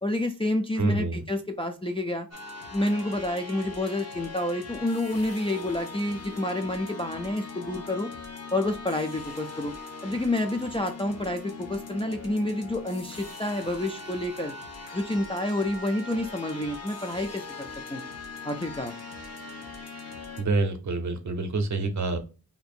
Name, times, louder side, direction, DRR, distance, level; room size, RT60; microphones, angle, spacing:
voice 1, 0.0-2.3 2.7-8.1 8.5-9.7 10.0-14.5 14.9-18.0 18.4-18.9, left 1 dB, 15° left, 3 dB, 0.3 m, -29 dB
voice 2, 0.8-1.2 20.4-22.2, right 3 dB, 50° right, 7 dB, 0.7 m, -27 dB
sound 1, 2.3-20.4, left 4 dB, 45° left, 0.7 m, -41 dB
2.7 x 2.5 x 4.2 m, 0.34 s
wide cardioid pair, 150°, 37 cm